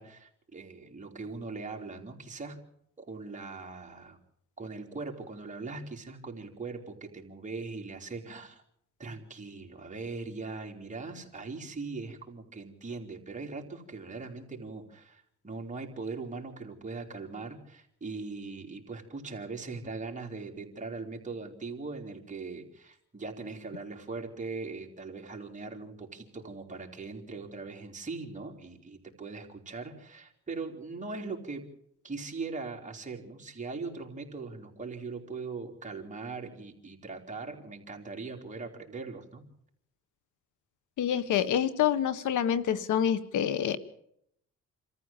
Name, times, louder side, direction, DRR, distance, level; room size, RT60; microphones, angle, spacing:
voice 1, 0.0-2.6 3.0-4.2 4.6-8.6 9.0-31.7 32.0-39.4, right 4 dB, 25° right, 1 dB, 3.9 m, -40 dB
voice 2, 41.0-43.8, left 9 dB, 80° left, 15 dB, 1.4 m, -27 dB
27.0 x 14.0 x 7.3 m, 0.72 s
cardioid pair, 90°, 30 cm